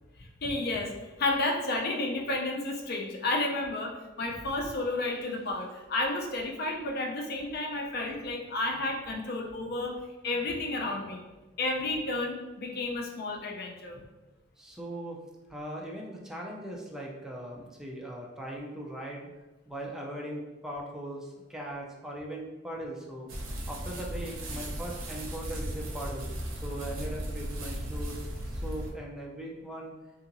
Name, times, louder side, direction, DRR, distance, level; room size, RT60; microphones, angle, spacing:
voice 1, 0.4-0.9 1.2-9.9 10.2-11.2 11.6-14.0, left 2 dB, 55° left, 1 dB, 0.5 m, -31 dB
voice 2, 14.6-15.2 15.5-19.3 19.7-23.3 23.7-26.3 26.6-28.2 28.5-30.0, right 1 dB, 5° right, -2 dB, 0.4 m, -39 dB
sound 1, 23.3-28.9, right 1 dB, 90° right, 0.6 m, -36 dB
2.8 x 2.7 x 2.5 m, 1.1 s
head